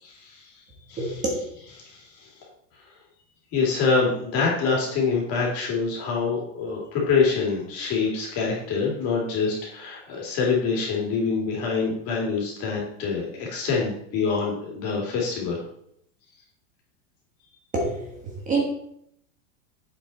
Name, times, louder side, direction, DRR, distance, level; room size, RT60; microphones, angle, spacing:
voice 1, 0.0-0.5 0.9-1.2 1.8-2.5 3.5-15.6, left 4 dB, 35° left, -2 dB, 2.9 m, -25 dB
voice 2, 1.0-1.4 17.7-18.1 18.5-18.6, right 3 dB, 20° right, -1 dB, 1.5 m, -25 dB
8.0 x 5.8 x 4.3 m, 0.72 s
supercardioid pair, 155°, 39 cm